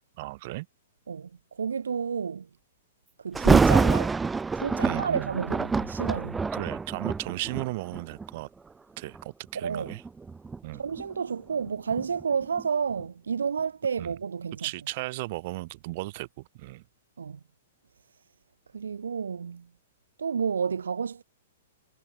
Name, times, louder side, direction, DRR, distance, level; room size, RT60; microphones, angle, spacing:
voice 1, 0.2-0.7 4.8-5.4 6.5-8.5 9.0-10.0 10.6-10.8 14.0-14.1 14.6-16.8, right 20 dB, 50° right, 5.5 m, -35 dB
voice 2, 1.1-2.5 3.2-4.2 4.5-6.5 9.5-9.9 10.8-14.7 17.2-17.4 18.7-19.7 20.2-21.2, right 6 dB, 85° right, 0.6 m, -31 dB
Thunder, 3.3-8.3 9.0-9.2 9.8-12.7 13.0-13.1, right 4 dB, 10° right, 1.0 m, -26 dB
hypercardioid pair, 125°, 0 cm